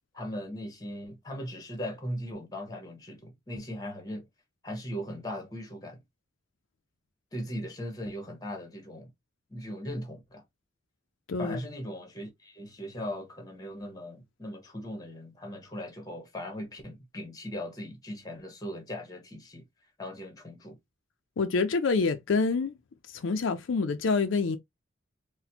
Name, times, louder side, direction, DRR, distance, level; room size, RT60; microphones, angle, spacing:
voice 1, 0.1-4.3 4.6-6.0 7.3-9.1 9.5-10.4 11.4-19.6 20.0-20.8, equal, 20° left, 1.0 m, -39 dB
voice 2, 11.3-11.6 21.4-22.8 23.1-24.6, left 4 dB, 75° left, 0.4 m, -27 dB
4.1 x 2.1 x 2.7 m
head